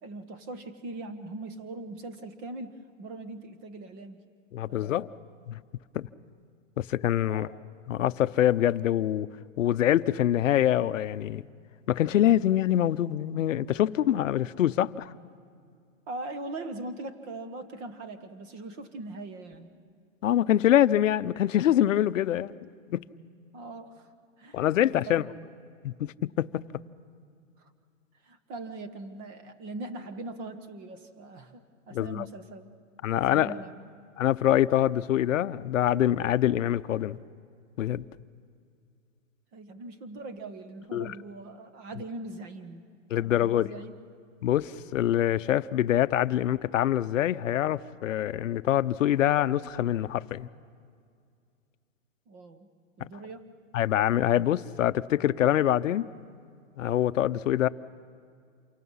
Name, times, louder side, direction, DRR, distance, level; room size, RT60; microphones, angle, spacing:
voice 1, 0.0-4.2 4.7-5.0 7.3-7.6 16.1-19.7 23.5-24.1 24.4-24.7 25.2-25.3 27.6-27.7 28.2-32.7 33.1-33.9 39.5-42.9 43.2-44.0 52.3-52.7 53.0-53.5, right 2 dB, 25° right, 8 dB, 1.2 m, -41 dB
voice 2, 4.5-5.1 5.5-5.6 5.9-6.1 6.8-7.5 7.9-9.3 9.6-11.4 11.9-15.1 20.2-22.5 22.9-23.0 24.5-25.2 25.8-26.6 31.9-32.2 33.0-33.5 34.2-37.2 37.8-38.0 40.9-41.1 43.1-43.7 44.4-50.5 53.7-56.1 56.8-57.7, left 12 dB, 70° left, 15 dB, 0.7 m, -25 dB
28.0 x 24.5 x 5.6 m, 2.3 s
hypercardioid pair, 160°, 39 cm